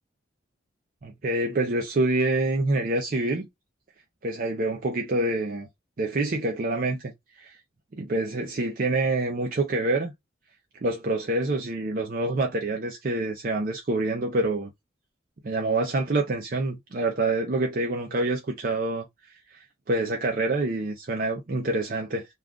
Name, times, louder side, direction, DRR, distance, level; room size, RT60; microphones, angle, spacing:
voice 1, 1.0-3.5 4.2-5.7 6.0-7.1 7.4-7.6 8.0-10.1 10.8-14.7 15.4-19.1 19.9-22.3, right 2 dB, 45° right, 0.5 m, -26 dB
2.4 x 2.3 x 3.5 m
head